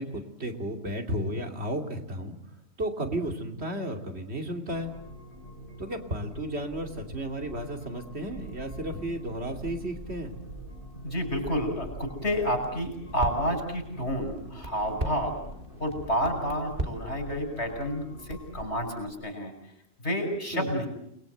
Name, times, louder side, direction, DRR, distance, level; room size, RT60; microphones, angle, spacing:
voice 1, 0.0-2.4 2.8-4.9 5.8-10.3 20.5-20.7, right 1 dB, 75° right, 5 dB, 3.1 m, -33 dB
sound 1, 4.7-18.4, left 1 dB, 50° left, 6.3 m, -46 dB
Crackle, 8.2-19.1, right 2 dB, 55° right, 3.1 m, -41 dB
voice 2, 11.0-15.4 15.8-19.5 20.0-20.9, equal, 80° left, 5 dB, 6.4 m, -30 dB
29.5 x 21.0 x 8.0 m, 0.76 s
omnidirectional pair, 1.1 m